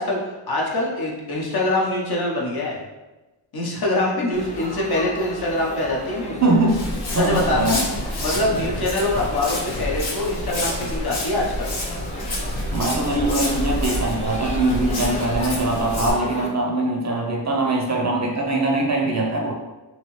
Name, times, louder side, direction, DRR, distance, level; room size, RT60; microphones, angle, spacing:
voice 1, 0.0-2.8 3.5-6.4 7.1-7.8 8.2-11.7, left 2 dB, 55° left, -3 dB, 0.8 m, -24 dB
Laughter / Chatter / Crowd, 4.3-16.5, left 1 dB, 15° left, 0.4 m, -35 dB
voice 2, 6.4-6.9 7.1-7.7 12.7-19.5, right 2 dB, 40° right, 0 dB, 0.5 m, -22 dB
Walk footsteps, 6.7-16.1, left 1 dB, 85° left, 0.9 m, -28 dB
3.1 x 2.8 x 3.0 m, 1.1 s
wide cardioid pair, 125°, 46 cm